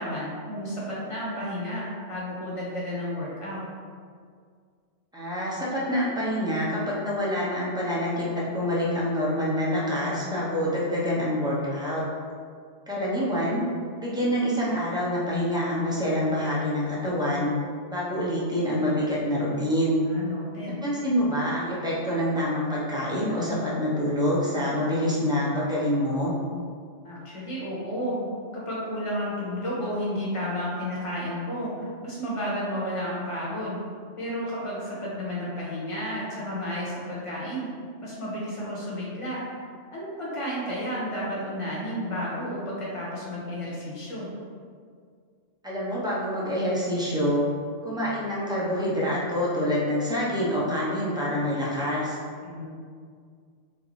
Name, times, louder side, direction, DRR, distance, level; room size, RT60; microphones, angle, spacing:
voice 1, 0.0-3.6 20.0-20.8 27.0-28.3 28.5-33.8 34.2-37.7 38.0-39.4 39.9-44.3 52.4-52.6, equal, 25° left, -6 dB, 1.1 m, -32 dB
voice 2, 5.1-12.0 12.9-13.6 14.0-17.5 17.9-20.0 20.8-26.3 45.6-47.4 47.8-52.2, equal, 5° right, -7 dB, 0.8 m, -26 dB
3.6 x 3.3 x 4.0 m, 2.1 s
omnidirectional pair, 1.3 m